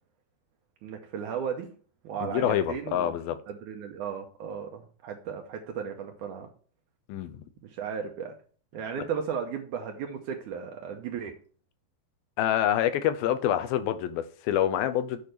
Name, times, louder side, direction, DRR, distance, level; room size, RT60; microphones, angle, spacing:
voice 1, 0.8-1.7 2.0-3.1 3.5-6.5 7.6-8.3 8.7-11.3, right 7 dB, 85° right, 1.7 m, -35 dB
voice 2, 2.2-3.4 7.1-7.4 12.4-15.3, left 11 dB, 80° left, 2.4 m, -27 dB
8.4 x 4.4 x 6.7 m
omnidirectional pair, 4.6 m